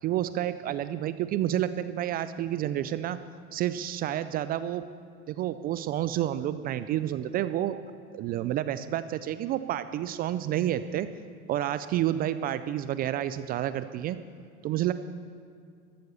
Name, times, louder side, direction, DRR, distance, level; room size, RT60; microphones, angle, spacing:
voice 1, 0.0-3.2 3.5-4.8 5.3-7.8 8.1-11.1 11.5-14.2 14.6-14.9, right 12 dB, 25° right, 13 dB, 0.3 m, -29 dB
14.0 x 13.0 x 7.0 m, 2.3 s
hypercardioid pair, 95°, 44 cm